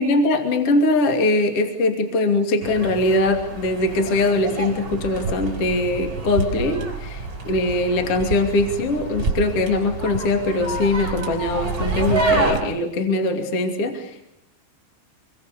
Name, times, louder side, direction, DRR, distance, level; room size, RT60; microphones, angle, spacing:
voice 1, 0.0-14.2, left 2 dB, 40° left, 5 dB, 2.7 m, -21 dB
sound 1, 2.6-12.6, right 3 dB, 20° right, 5.7 m, -27 dB
27.0 x 23.5 x 6.8 m, 0.81 s
omnidirectional pair, 5.5 m